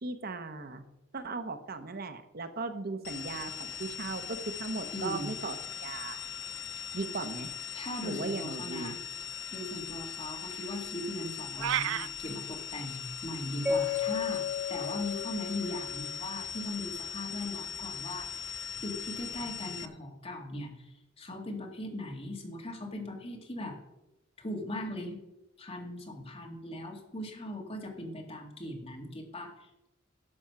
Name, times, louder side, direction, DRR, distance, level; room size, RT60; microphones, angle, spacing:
voice 1, 0.0-0.8 1.1-6.2 6.9-7.5 8.0-9.0, right 3 dB, 50° right, 9 dB, 0.9 m, -37 dB
sound 1, 3.0-19.9, left 7 dB, 75° left, 0.8 m, -40 dB
voice 2, 4.9-5.3 7.7-9.0 9.5-18.5 18.8-23.8 24.4-25.2 25.6-29.7, left 1 dB, 30° left, 1 dB, 2.2 m, -39 dB
sound 2, 11.6-12.1, right 12 dB, 90° right, 0.4 m, -30 dB
Mallet percussion, 13.7-16.6, left 6 dB, 10° right, 1.9 m, -34 dB
12.0 x 7.7 x 5.8 m, 0.93 s
head